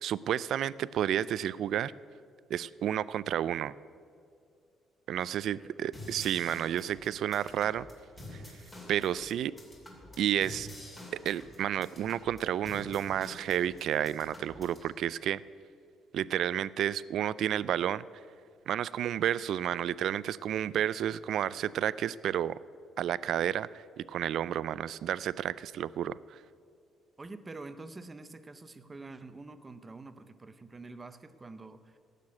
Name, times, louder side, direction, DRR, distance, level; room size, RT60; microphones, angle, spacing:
voice 1, 0.0-1.9 2.5-3.7 5.1-7.9 8.3-8.4 8.9-9.5 10.2-10.7 11.2-15.4 16.1-18.0 18.7-22.6 23.0-26.4, right 10 dB, 60° right, 18 dB, 0.3 m, -31 dB
voice 2, 5.2-5.8 27.2-32.0, right 3 dB, 15° right, 10 dB, 0.7 m, -47 dB
sound 1, 5.9-14.9, left 1 dB, 15° left, 2.7 m, -48 dB
17.0 x 6.7 x 8.5 m, 2.3 s
cardioid pair, 160°, 0 cm